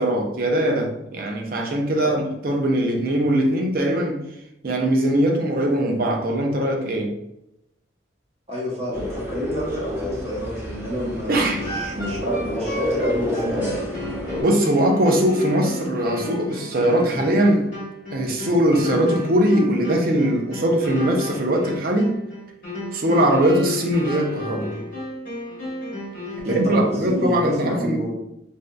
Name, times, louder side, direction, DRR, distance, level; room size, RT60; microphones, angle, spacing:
voice 1, 0.0-4.2 4.6-7.1 11.3-11.6 14.4-17.7 18.1-22.2 22.9-24.7 26.4-28.0, right 1 dB, 50° right, 2 dB, 0.5 m, -21 dB
voice 2, 8.5-13.8 26.4-28.1, equal, 35° right, -5 dB, 1.0 m, -28 dB
sound 1, 8.9-14.4, left 1 dB, 10° right, 1.0 m, -29 dB
sound 2, 11.5-26.8, left 2 dB, 45° left, 1.2 m, -32 dB
3.5 x 2.6 x 2.2 m, 0.82 s
head